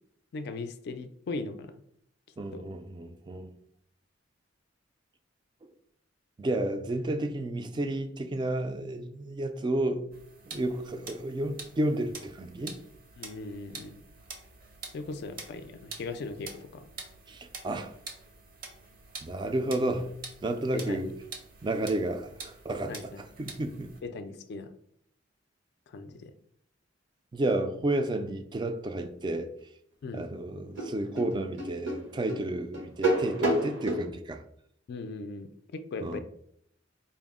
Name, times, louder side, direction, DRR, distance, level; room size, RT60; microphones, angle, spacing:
voice 1, 0.3-1.8 2.5-2.7 10.5-10.6 13.2-14.0 14.9-16.9 20.7-21.1 22.9-23.2 24.0-24.7 25.9-26.3 30.0-30.2 34.9-36.2, left 3 dB, 60° left, 0.3 m, -39 dB
voice 2, 2.4-3.5 5.6-5.7 6.4-10.2 10.5-12.8 17.3-17.9 19.2-21.1 21.6-24.0 27.3-29.5 30.1-34.4 36.0-36.2, right 1 dB, 25° right, 0.3 m, -32 dB
sound 1, 10.1-24.0, right 4 dB, 50° right, 0.7 m, -47 dB
sound 2, 30.2-30.3 30.8-34.0, right 1 dB, 70° right, 0.9 m, -29 dB
4.3 x 2.0 x 3.5 m
head